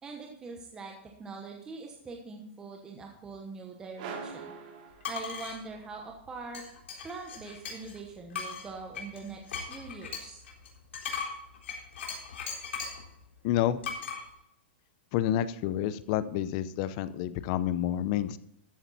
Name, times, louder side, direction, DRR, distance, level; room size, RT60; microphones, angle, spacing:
voice 1, 0.0-0.9 1.2-4.5 5.1-6.6 7.0-10.4, right 4 dB, 10° right, 1 dB, 1.0 m, -43 dB
sound 1, 4.0-5.7, right 5 dB, 45° right, 2.5 m, -43 dB
sound 2, 5.0-5.6 6.5-8.0 8.3-13.1 13.8-14.2, left 6 dB, 80° left, 3.9 m, -38 dB
voice 2, 13.4-13.8 15.1-18.4, left 12 dB, 35° left, 15 dB, 0.6 m, -29 dB
13.5 x 8.7 x 4.1 m, 0.80 s
hypercardioid pair, 165°, 6 cm